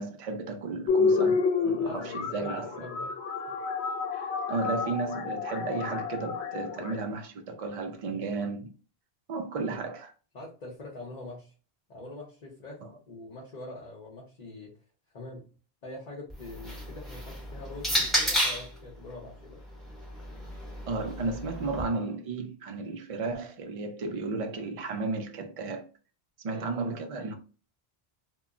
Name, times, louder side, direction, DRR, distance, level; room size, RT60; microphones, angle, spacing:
voice 1, 0.0-2.8 4.1-8.7 9.3-10.1 12.8-12.9 20.9-25.9 26.4-27.3, right 3 dB, 60° right, 0.3 m, -34 dB
sound 1, 0.9-7.0, left 5 dB, 85° left, 0.9 m, -29 dB
voice 2, 1.7-3.1 8.1-8.3 10.3-11.5 11.9-12.8 13.1-14.7 15.1-15.4 15.8-19.6 26.4-26.7, left 2 dB, 45° left, 0.8 m, -44 dB
sound 2, 16.3-18.8 19.7-21.8, equal, ahead, 0.8 m, -31 dB
2.2 x 2.1 x 3.6 m
omnidirectional pair, 1.1 m